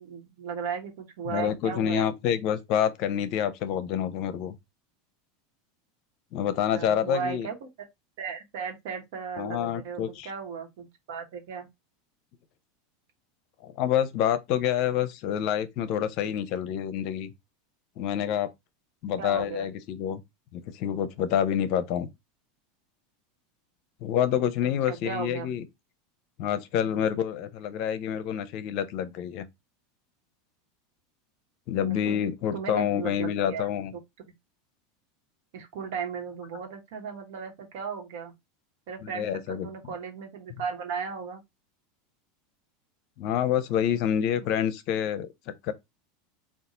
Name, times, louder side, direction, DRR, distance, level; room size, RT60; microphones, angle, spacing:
voice 1, 0.0-2.2 6.4-6.5 6.7-7.7 8.2-11.7 19.2-19.7 24.6-25.5 31.8-32.3 32.5-33.7 35.5-38.3 38.9-41.4, right 6 dB, 70° right, 1.2 m, -36 dB
voice 2, 1.3-4.6 6.3-7.5 9.4-10.3 13.6-17.3 18.0-18.5 19.0-20.2 20.5-22.1 24.0-25.6 26.4-29.5 31.7-33.9 39.0-39.7 43.2-45.3 45.6-45.7, left 9 dB, 55° left, 0.6 m, -27 dB
4.1 x 2.4 x 3.7 m
hypercardioid pair, 100°, 0 cm